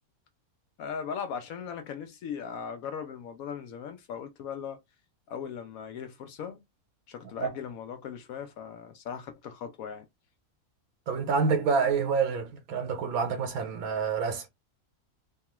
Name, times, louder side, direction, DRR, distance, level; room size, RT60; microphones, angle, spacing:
voice 1, 0.8-4.8 5.3-6.6 7.1-10.0, left 7 dB, 75° left, 1.0 m, -38 dB
voice 2, 11.1-14.5, right 5 dB, 80° right, 1.1 m, -27 dB
2.8 x 2.3 x 2.9 m
omnidirectional pair, 1.5 m